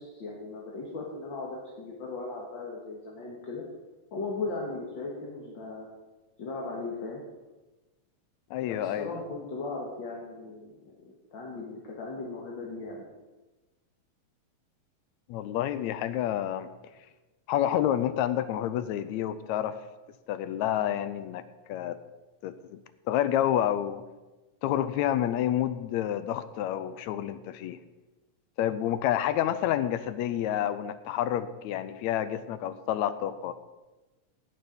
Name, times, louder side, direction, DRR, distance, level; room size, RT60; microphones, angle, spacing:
voice 1, 0.0-3.6 4.1-5.9 6.4-7.2 8.6-13.1, left 3 dB, 45° left, -2 dB, 2.0 m, -37 dB
voice 2, 8.5-9.1 15.3-16.7 17.5-19.8 20.3-21.4 21.7-22.0 22.4-22.8 23.1-24.0 24.6-27.8 28.6-33.5, left 11 dB, 80° left, 13 dB, 1.8 m, -29 dB
17.5 x 6.7 x 5.2 m, 1.1 s
omnidirectional pair, 3.4 m